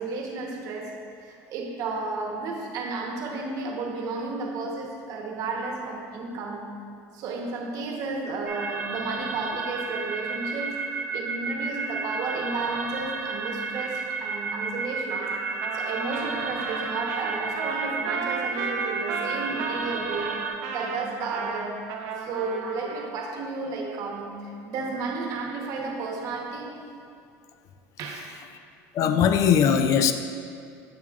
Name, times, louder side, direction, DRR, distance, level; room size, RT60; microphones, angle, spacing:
voice 1, 0.0-6.8 7.1-10.8 11.1-15.3 15.7-20.4 20.7-21.9 22.2-26.8 28.0-28.4, right 3 dB, 55° right, 1 dB, 1.0 m, -32 dB
sound 1, 8.5-20.5, right 4 dB, 25° right, 0.8 m, -32 dB
Trumpet, 15.1-23.1, right 5 dB, 75° right, 0.7 m, -34 dB
voice 2, 28.9-30.1, left 8 dB, 50° left, 9 dB, 0.4 m, -20 dB
7.4 x 7.3 x 2.4 m, 2.4 s
cardioid pair, 130°, 7 cm